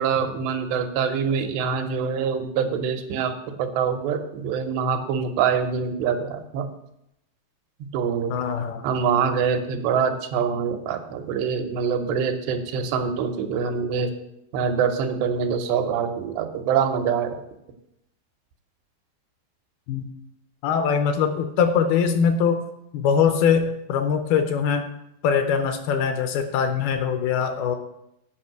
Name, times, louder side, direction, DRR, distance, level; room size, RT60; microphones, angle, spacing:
voice 1, 0.0-6.7 7.9-8.3 8.8-14.1 14.5-17.4, right 6 dB, 85° right, 5 dB, 3.0 m, -25 dB
voice 2, 8.3-8.9 19.9-20.1 20.6-22.6 22.9-24.9 25.2-27.8, left 7 dB, 80° left, 7 dB, 2.4 m, -22 dB
8.6 x 5.4 x 7.7 m, 0.81 s
omnidirectional pair, 4.8 m